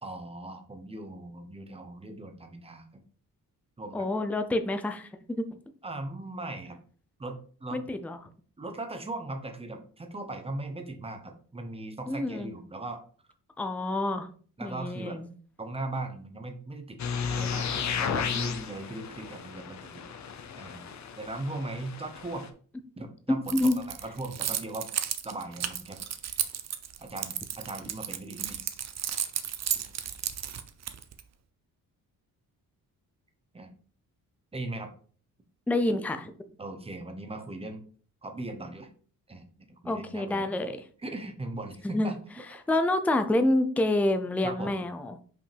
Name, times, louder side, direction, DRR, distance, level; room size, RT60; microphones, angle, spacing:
voice 1, 0.0-3.0 3.8-4.1 5.8-6.8 7.2-7.8 8.6-13.0 14.6-15.2 15.6-17.0 17.3-20.0 20.5-20.8 21.2-22.5 23.0-24.9 25.2-26.0 27.0-28.8 29.7-29.8 33.5-33.7 34.5-34.9 36.6-37.8 38.2-38.9 39.3-40.5 41.0-42.2 44.4-44.8, right 2 dB, 15° right, 5 dB, 0.8 m, -39 dB
voice 2, 3.9-5.6 7.7-8.2 12.1-12.5 13.6-14.3 14.6-15.3 23.3-23.8 35.7-36.4 39.9-40.8 41.8-42.1 42.7-45.2, left 1 dB, 5° left, 8 dB, 0.4 m, -27 dB
sound 1, 17.0-22.5, left 6 dB, 50° left, 0.7 m, -34 dB
Keys jangling, 23.5-31.2, right 9 dB, 50° right, 0.6 m, -33 dB
5.5 x 5.2 x 3.4 m, 0.43 s
wide cardioid pair, 155°, 35 cm